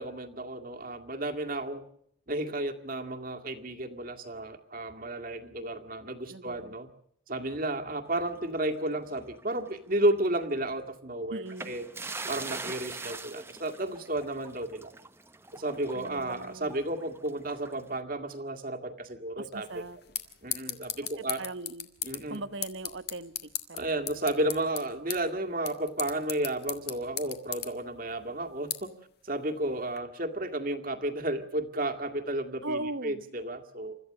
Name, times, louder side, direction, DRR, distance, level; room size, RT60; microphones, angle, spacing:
voice 1, 0.0-1.9 2.3-6.9 7.3-11.9 12.3-14.9 15.5-19.7 20.4-21.4 22.0-22.4 23.7-28.9 29.2-32.8 33.0-34.0, right 1 dB, 45° right, 4 dB, 2.0 m, -32 dB
voice 2, 6.3-6.8 11.3-11.7 15.9-16.7 19.4-20.0 21.2-21.9 22.3-23.3 23.7-23.9 32.6-33.2, right 2 dB, 70° right, 13 dB, 1.2 m, -39 dB
water pour dump from bucket onto street and into drain, 8.1-9.7 10.0-10.2 11.5-18.0, right 3 dB, 10° right, 0.9 m, -43 dB
sound 1, 19.5-30.0, left 11 dB, 50° left, 2.0 m, -40 dB
29.0 x 14.0 x 6.6 m, 0.71 s
head